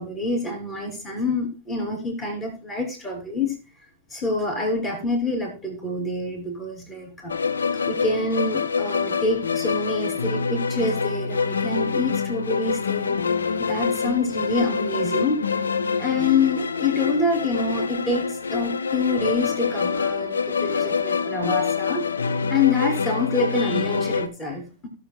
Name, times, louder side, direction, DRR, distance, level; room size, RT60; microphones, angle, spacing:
voice 1, 0.0-3.6 4.1-7.3 7.8-13.2 13.6-15.4 16.0-22.1 22.5-24.9, left 3 dB, 25° left, 0 dB, 3.3 m, -26 dB
sound 1, 7.3-24.3, left 5 dB, 70° left, 0.5 m, -26 dB
17.0 x 6.8 x 2.3 m, 0.33 s
figure-of-eight pair, 90°, 0 cm